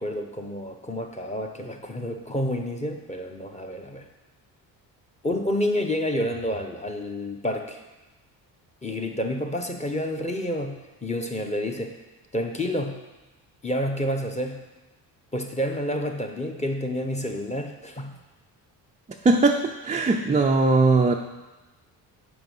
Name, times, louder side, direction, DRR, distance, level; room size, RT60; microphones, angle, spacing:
voice 1, 0.0-4.0 5.2-7.8 8.8-11.9 12.3-13.0 13.6-14.6 15.3-18.2, left 1 dB, 15° left, 4 dB, 1.0 m, -29 dB
voice 2, 19.2-21.1, right 3 dB, 15° right, 1 dB, 0.4 m, -20 dB
5.8 x 4.6 x 5.6 m, 1.1 s
hypercardioid pair, 55°, 49 cm